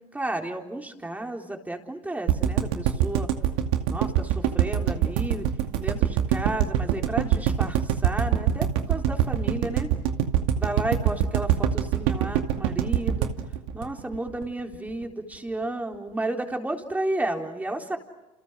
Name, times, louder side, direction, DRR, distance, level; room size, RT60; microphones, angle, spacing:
voice 1, 0.1-3.3 3.9-5.5 5.8-9.9 10.6-13.3 13.7-18.0, right 1 dB, 10° right, 3 dB, 3.9 m, -32 dB
sound 1, 2.3-14.4 14.7-14.8 15.0-15.1, right 10 dB, 80° right, 2.3 m, -23 dB
29.5 x 28.5 x 6.4 m, 0.99 s
supercardioid pair, 95°, 14 cm